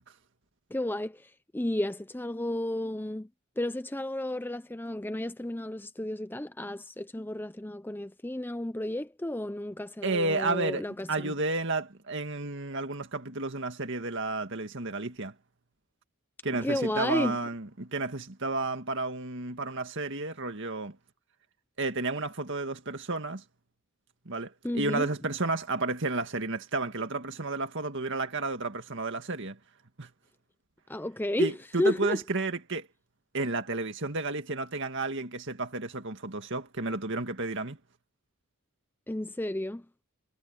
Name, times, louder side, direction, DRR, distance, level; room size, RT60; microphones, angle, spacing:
voice 1, 0.7-3.3 3.6-11.3 16.6-17.4 24.6-25.1 30.9-32.2 39.1-39.9, left 1 dB, 10° left, 0.6 m, -32 dB
voice 2, 10.0-15.3 16.4-21.0 21.8-23.4 24.3-29.6 30.0-30.1 31.4-32.9 33.3-37.8, right 3 dB, 55° right, 2.1 m, -32 dB
head